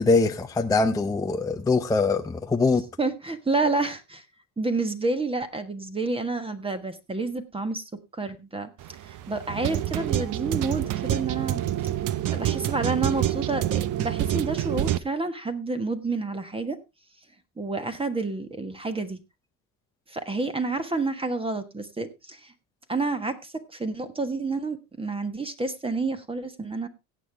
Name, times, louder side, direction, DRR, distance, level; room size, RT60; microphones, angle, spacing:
voice 1, 0.0-2.8, left 3 dB, 10° left, 0.6 m, -23 dB
voice 2, 3.0-4.2 4.6-8.7 9.1-11.6 12.3-16.8 17.6-19.2 20.1-22.5 22.9-26.9, right 3 dB, 15° right, 1.4 m, -29 dB
sound 1, 8.8-15.0, right 13 dB, 45° right, 0.9 m, -27 dB
17.0 x 7.5 x 3.4 m
supercardioid pair, 105°, 43 cm